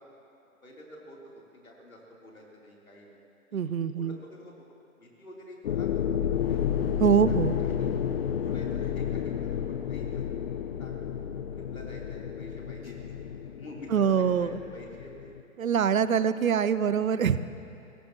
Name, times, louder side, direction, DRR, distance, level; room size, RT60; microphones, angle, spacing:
voice 1, 0.6-3.2 3.5-4.5 5.0-5.9 6.3-6.7 7.3-8.0 8.4-9.6 9.9-10.4 10.8-11.0 11.5-13.2 13.6-15.3 16.2-16.3 17.3-17.4, left 1 dB, 80° left, -3 dB, 3.5 m, -48 dB
voice 2, 3.5-4.2 7.0-7.5 13.9-14.6 15.6-17.4, right 7 dB, 75° right, 15 dB, 0.7 m, -24 dB
sound 1, 5.6-15.4, left 9 dB, 45° left, 0.6 m, -31 dB
22.0 x 16.5 x 3.0 m, 2.6 s
figure-of-eight pair, 120°, 41 cm